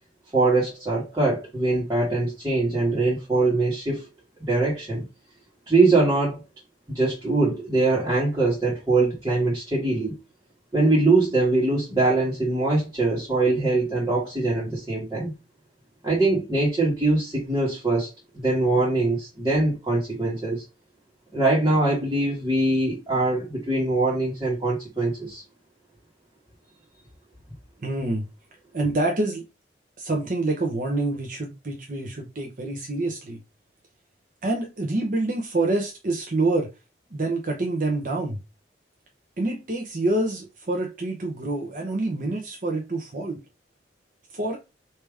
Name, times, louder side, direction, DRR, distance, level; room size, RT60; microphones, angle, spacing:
voice 1, 0.3-4.1 4.4-5.0 5.7-6.4 6.9-10.1 10.7-15.3 16.0-18.1 18.3-20.6 21.3-25.4, right 2 dB, 20° right, 1.6 m, -22 dB
voice 2, 27.8-28.2 28.7-29.4 30.0-33.4 34.4-36.7 37.1-38.4 39.4-43.4 44.3-44.6, right 2 dB, 50° right, 0.8 m, -26 dB
3.4 x 2.9 x 4.7 m
head